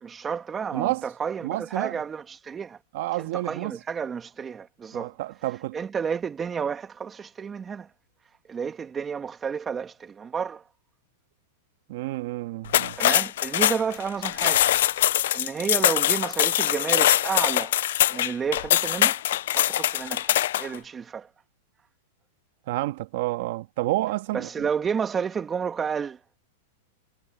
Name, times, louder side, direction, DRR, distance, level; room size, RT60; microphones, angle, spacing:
voice 1, 0.0-2.8 3.1-5.2 5.7-7.9 8.5-10.6 13.0-14.7 15.3-17.8 18.1-19.2 19.5-21.3 24.3-26.2, right 6 dB, 20° right, 2.0 m, -31 dB
voice 2, 0.7-1.0 1.4-2.0 2.9-3.7 4.9-5.8 11.9-13.0 22.7-24.7, right 18 dB, 60° right, 1.5 m, -29 dB
sound 1, 12.7-20.8, left 13 dB, 70° left, 0.4 m, -23 dB
hypercardioid pair, 130°, 0 cm